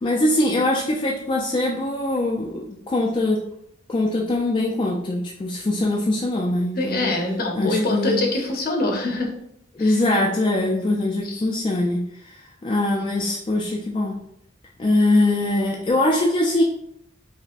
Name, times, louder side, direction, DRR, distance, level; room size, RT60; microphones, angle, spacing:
voice 1, 0.0-3.4 3.9-7.1 7.6-8.2 9.7-14.2 14.8-16.6, left 1 dB, 30° left, -2 dB, 0.3 m, -22 dB
voice 2, 6.8-9.3 9.8-10.0 11.2-11.4, left 2 dB, 50° left, 1 dB, 0.7 m, -24 dB
5.1 x 2.1 x 2.5 m, 0.75 s
head